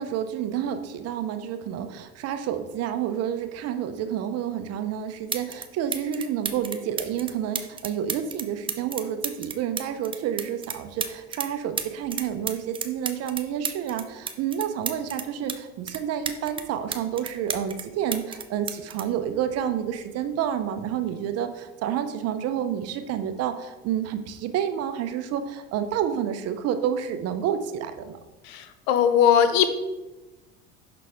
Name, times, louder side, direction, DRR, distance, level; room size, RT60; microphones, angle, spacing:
voice 1, 0.0-28.2, right 9 dB, 50° right, 9 dB, 0.7 m, -29 dB
sound 1, 4.8-4.9 5.3-5.7 5.9-11.5 11.8-15.6 15.9-17.8 18.1-19.9 20.9-21.1, right 6 dB, 15° right, 0.4 m, -32 dB
voice 2, 28.4-29.8, left 8 dB, 75° left, 9 dB, 0.8 m, -20 dB
5.7 x 4.0 x 4.9 m, 1.1 s
supercardioid pair, 100°, 32 cm